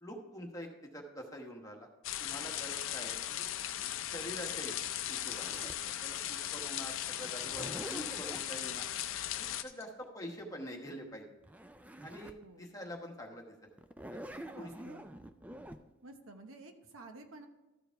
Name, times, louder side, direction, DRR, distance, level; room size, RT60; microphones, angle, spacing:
voice 1, 0.0-1.9 2.2-3.5 4.1-5.6 5.8-8.9 9.3-11.2 12.0-13.7 14.1-14.7, equal, 15° left, 1 dB, 1.2 m, -46 dB
sound 1, 2.0-9.6, left 12 dB, 70° left, 0.5 m, -38 dB
Zipper (clothing), 3.2-5.9 7.3-8.5 11.1-11.2 11.4-12.4 12.9-13.0 13.8-15.8, right 1 dB, 5° right, 0.3 m, -47 dB
sound 2, 4.9-9.8, left 6 dB, 30° left, 1.6 m, -52 dB
voice 2, 12.4-13.2 14.5-15.1 16.0-17.5, right 2 dB, 80° right, 6 dB, 0.9 m, -52 dB
13.5 x 4.9 x 4.6 m, 1.1 s
head